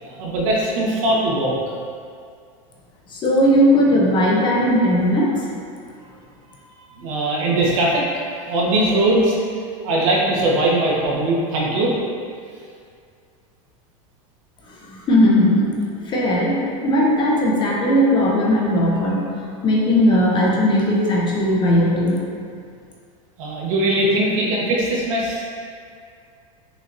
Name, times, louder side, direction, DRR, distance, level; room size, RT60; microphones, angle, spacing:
voice 1, 0.0-1.5 7.0-8.0 8.4-9.4 9.8-11.9 23.4-25.4, right 1 dB, 70° right, -4 dB, 1.1 m, -20 dB
voice 2, 3.1-5.3 14.9-15.7 16.1-19.2 19.6-22.2, equal, 25° left, -3 dB, 0.7 m, -17 dB
6.0 x 2.8 x 2.5 m, 2.2 s
supercardioid pair, 135°, 18 cm